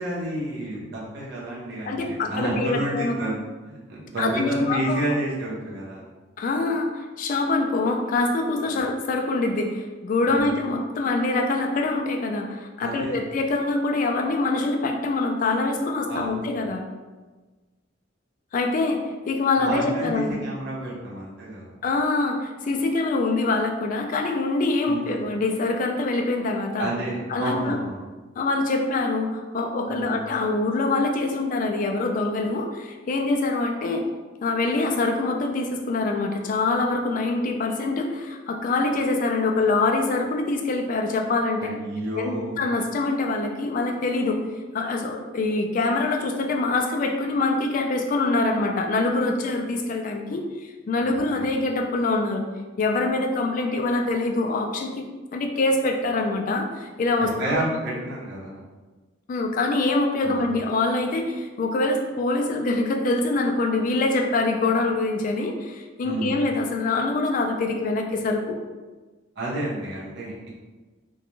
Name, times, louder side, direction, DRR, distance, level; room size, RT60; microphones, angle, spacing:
voice 1, 0.0-3.4 3.6-6.1 8.7-8.8 10.3-10.5 12.8-13.2 16.0-16.6 19.6-21.7 24.8-25.2 26.8-28.0 29.9-30.2 41.6-42.6 51.0-51.5 57.2-58.6 60.2-60.4 66.0-66.4 69.4-70.5, right 1 dB, 60° right, -6 dB, 0.9 m, -30 dB
voice 2, 1.8-3.1 4.2-5.0 6.4-16.9 18.5-19.0 19.3-20.4 21.8-26.9 27.3-27.8 28.4-34.1 34.4-41.7 42.2-44.4 44.7-52.5 52.8-55.1 55.3-57.7 59.3-68.6, left 3 dB, 45° left, 3 dB, 0.3 m, -24 dB
2.4 x 2.2 x 2.9 m, 1.3 s
head